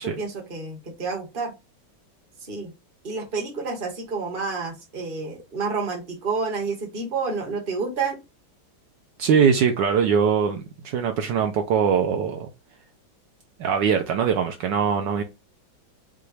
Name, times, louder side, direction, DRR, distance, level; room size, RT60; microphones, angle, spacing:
voice 1, 0.0-1.5 2.4-2.7 3.0-8.2, right 4 dB, 30° right, 1.4 m, -29 dB
voice 2, 9.2-12.5 13.6-15.2, right 7 dB, 70° right, 1.2 m, -22 dB
5.8 x 2.5 x 3.2 m
omnidirectional pair, 2.1 m